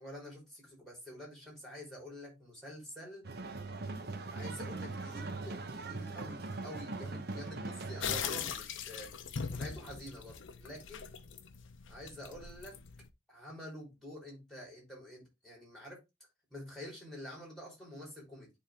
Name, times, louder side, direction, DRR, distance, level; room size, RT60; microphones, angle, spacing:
voice 1, 0.0-3.2 4.3-9.1 9.5-11.1 11.9-12.8 13.3-16.0 16.5-18.5, equal, ahead, 3.3 m, -47 dB
sound 1, 3.2-8.2, right 3 dB, 55° right, 0.9 m, -41 dB
sound 2, 8.0-13.1, left 7 dB, 75° left, 0.7 m, -41 dB
10.0 x 3.6 x 3.3 m
head